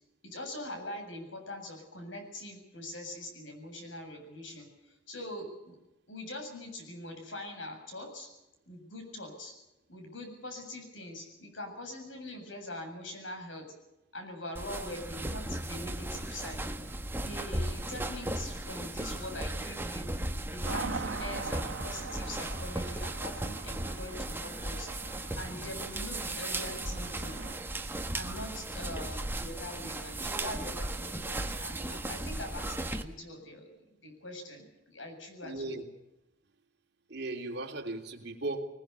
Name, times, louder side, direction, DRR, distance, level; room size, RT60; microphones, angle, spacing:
voice 1, 0.2-4.7 5.1-5.8 6.1-8.3 8.7-9.5 9.9-13.7 14.1-16.6 17.2-20.1 20.5-24.9 25.4-27.4 28.1-33.6 34.0-35.8, left 1 dB, 85° left, 4 dB, 7.7 m, -43 dB
sound 1, 14.5-33.0, right 1 dB, 10° right, 1.3 m, -36 dB
sound 2, 20.6-27.6, right 3 dB, 90° right, 1.8 m, -42 dB
voice 2, 35.4-35.9 37.1-38.6, right 2 dB, 60° right, 3 dB, 3.2 m, -37 dB
22.0 x 20.5 x 7.0 m, 0.93 s
head